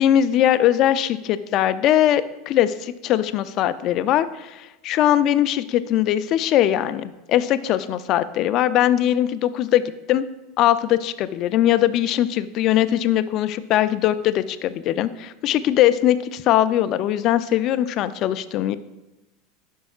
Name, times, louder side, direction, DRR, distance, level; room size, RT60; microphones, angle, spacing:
voice 1, 0.0-9.8 10.1-10.2 10.6-18.8, left 12 dB, 50° left, 13 dB, 0.4 m, -20 dB
12.0 x 5.4 x 2.4 m, 1.0 s
hypercardioid pair, 105°, 0 cm